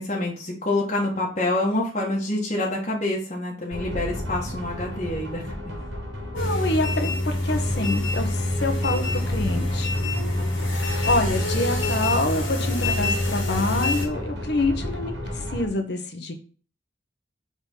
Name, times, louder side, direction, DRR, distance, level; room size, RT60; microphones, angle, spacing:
voice 1, 0.0-5.7, left 2 dB, 35° left, -4 dB, 1.5 m, -27 dB
sound 1, 3.7-15.7, left 1 dB, 75° right, 2.4 m, -33 dB
voice 2, 6.3-9.9 10.7-16.3, left 2 dB, 60° left, 7 dB, 1.2 m, -27 dB
sound 2, 6.4-14.1, left 2 dB, 90° left, 2.2 m, -26 dB
5.7 x 4.0 x 5.4 m, 0.40 s
head